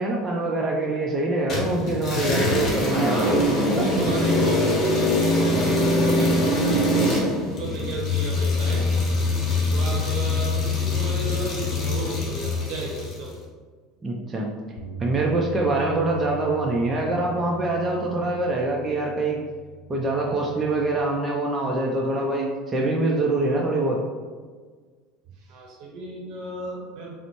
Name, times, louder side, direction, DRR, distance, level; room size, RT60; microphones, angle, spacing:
voice 1, 0.0-3.8 14.0-14.5 15.0-19.4 19.9-24.0, right 2 dB, 25° right, -2 dB, 0.5 m, -24 dB
sound 1, 1.5-13.3, left 2 dB, 45° left, 1.0 m, -23 dB
voice 2, 2.9-8.9 9.7-13.3 25.4-27.1, right 2 dB, 60° right, 0 dB, 0.8 m, -34 dB
Bass guitar, 14.8-21.0, right 7 dB, 70° left, 0.4 m, -40 dB
4.1 x 2.1 x 3.0 m, 1.5 s
hypercardioid pair, 75°, 0 cm